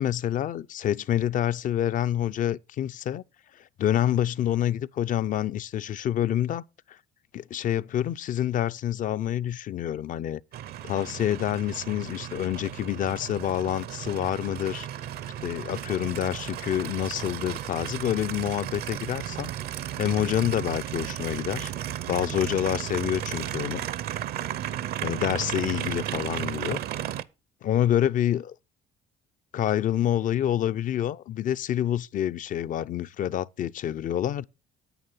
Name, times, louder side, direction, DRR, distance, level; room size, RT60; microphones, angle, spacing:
voice 1, 0.0-3.2 3.8-6.6 7.3-10.4 10.8-14.9 15.4-19.5 20.0-21.7 22.1-23.8 25.0-26.8 27.6-28.5 29.5-34.4, left 11 dB, 50° left, 0.5 m, -27 dB
Aircraft, 10.5-27.2, right 11 dB, 65° right, 0.6 m, -34 dB
9.4 x 8.8 x 5.5 m
cardioid pair, 110°, 17 cm